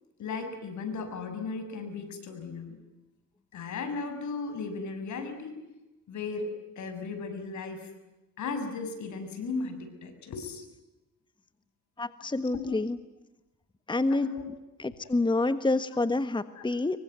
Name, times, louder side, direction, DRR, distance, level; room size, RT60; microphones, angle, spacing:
voice 1, 0.2-2.8 3.5-5.5 6.1-6.5 6.8-7.9 8.4-10.6 12.5-12.8 14.1-14.5 15.0-15.1 16.6-16.7, left 4 dB, 70° left, 8 dB, 6.9 m, -36 dB
voice 2, 12.0-13.0 13.9-14.3 14.8-17.0, left 2 dB, 15° left, 11 dB, 1.4 m, -27 dB
26.0 x 23.5 x 9.3 m, 1.0 s
cardioid pair, 90°, 30 cm